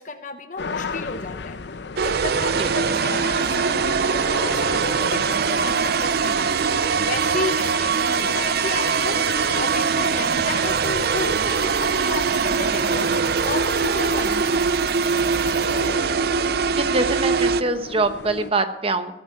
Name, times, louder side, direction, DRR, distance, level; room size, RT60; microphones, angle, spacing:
voice 1, 0.0-1.6 2.0-6.6 7.0-13.1 13.4-14.7, left 3 dB, 45° left, 8 dB, 1.0 m, -33 dB
sound 1, 0.6-18.5, left 4 dB, 70° left, 0.7 m, -34 dB
sound 2, 2.0-17.6, right 6 dB, 60° right, 0.4 m, -22 dB
sound 3, 4.6-16.0, left 7 dB, 25° left, 1.3 m, -44 dB
voice 2, 16.8-19.1, right 3 dB, 30° right, 9 dB, 1.1 m, -24 dB
17.5 x 8.6 x 9.1 m, 0.93 s
head